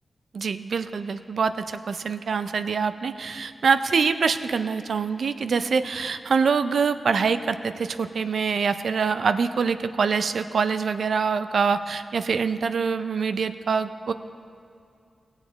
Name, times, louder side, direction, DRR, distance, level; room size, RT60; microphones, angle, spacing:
voice 1, 0.3-14.1, right 5 dB, 75° right, 11 dB, 0.4 m, -25 dB
17.5 x 7.2 x 3.9 m, 2.4 s
cardioid pair, 50°, 0 cm